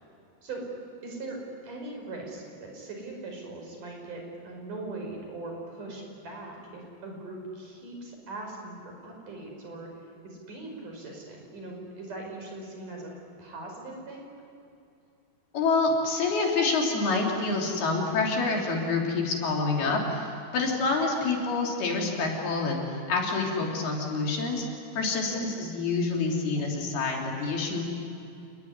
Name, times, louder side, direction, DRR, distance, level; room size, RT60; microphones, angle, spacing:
voice 1, 1.0-1.4 1.6-9.9 10.2-13.1 13.4-14.3 25.2-25.4, right 2 dB, 50° right, 1 dB, 6.7 m, -40 dB
voice 2, 15.5-22.8 23.1-24.7 25.0-27.8, left 3 dB, 65° left, -1 dB, 5.4 m, -27 dB
29.5 x 20.0 x 9.7 m, 2.8 s
omnidirectional pair, 4.8 m